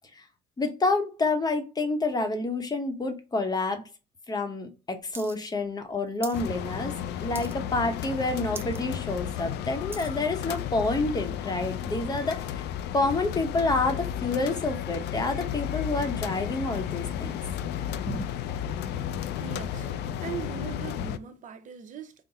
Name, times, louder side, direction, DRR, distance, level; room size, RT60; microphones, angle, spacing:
voice 1, 0.6-3.8 4.3-6.9 7.2-12.7 12.9-17.4 18.1-18.3, left 2 dB, 25° left, 0.8 m, -28 dB
sound 1, 5.1-5.4 5.6-6.4 6.8-7.0 7.3-7.8 8.2-8.3 8.5-8.8 9.3-10.2 10.8-10.9, right 3 dB, 15° right, 0.5 m, -42 dB
sound 2, 6.3-21.2, left 10 dB, 80° left, 0.4 m, -33 dB
voice 2, 19.4-19.9 20.2-22.2, right 8 dB, 50° right, 0.7 m, -39 dB
3.9 x 2.1 x 3.9 m
cardioid pair, 110°, 17 cm